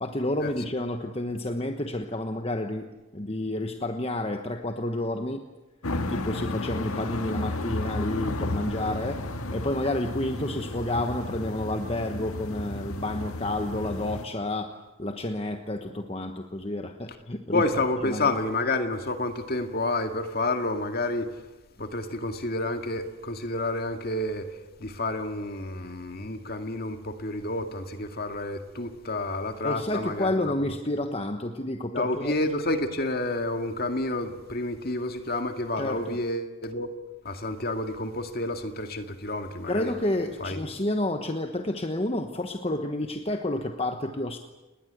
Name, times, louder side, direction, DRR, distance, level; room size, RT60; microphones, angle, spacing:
voice 1, 0.0-2.9 3.1-5.5 6.1-9.2 9.5-14.7 15.0-17.6 18.0-18.3 29.6-32.3 35.8-36.2 39.7-44.4, left 1 dB, 25° left, 1.1 m, -30 dB
sound 1, 5.8-14.3, left 2 dB, 90° left, 1.8 m, -33 dB
voice 2, 17.5-21.4 21.8-30.7 31.9-36.9 37.2-39.9 40.4-40.6, left 2 dB, 45° left, 2.1 m, -29 dB
29.5 x 20.5 x 8.2 m
head